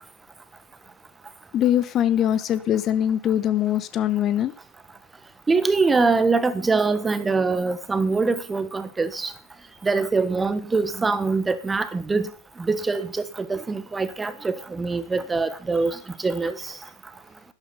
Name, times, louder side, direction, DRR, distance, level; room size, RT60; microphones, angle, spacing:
voice 1, 1.5-4.5, left 11 dB, 30° left, 1.0 m, -22 dB
voice 2, 5.5-9.3 9.8-12.3 12.6-16.0 16.2-16.6, right 4 dB, 10° right, 1.3 m, -23 dB
12.0 x 12.0 x 5.6 m
figure-of-eight pair, 90°, 0 cm